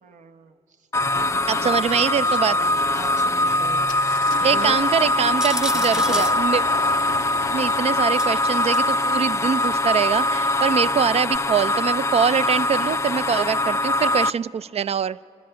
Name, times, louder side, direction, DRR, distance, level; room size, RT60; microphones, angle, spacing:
voice 1, 0.0-0.6 1.2-2.7 2.9-3.8 4.4-4.8 5.7-6.2, right 6 dB, 65° right, 7 dB, 1.2 m, -38 dB
sound 1, 0.9-14.3, left 1 dB, 20° left, 0.5 m, -22 dB
voice 2, 1.5-2.6 4.4-6.6 7.5-15.2, right 7 dB, 50° right, 18 dB, 0.4 m, -23 dB
Engine starting, 3.9-11.2, left 12 dB, 80° left, 0.5 m, -38 dB
sound 2, 5.4-6.4 8.2-8.9 9.6-9.7 11.3-11.4, equal, 5° right, 0.7 m, -30 dB
26.5 x 12.5 x 8.9 m, 2.6 s
supercardioid pair, 65°, 14 cm